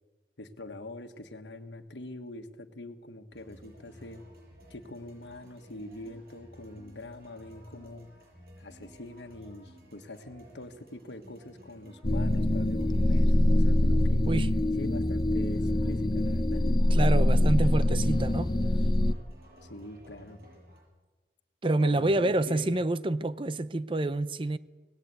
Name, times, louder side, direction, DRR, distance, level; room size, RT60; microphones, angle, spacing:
voice 1, 0.4-4.2 4.7-8.1 8.6-14.2 14.8-16.7 19.6-20.4 21.8-22.8, left 1 dB, 85° left, 1.5 m, -44 dB
sound 1, 3.3-20.8, equal, 55° right, 6.7 m, -54 dB
sound 2, 12.0-19.1, left 1 dB, 25° left, 0.6 m, -24 dB
voice 2, 16.9-18.5 21.6-24.6, right 2 dB, 30° right, 0.5 m, -27 dB
19.0 x 16.5 x 8.3 m
head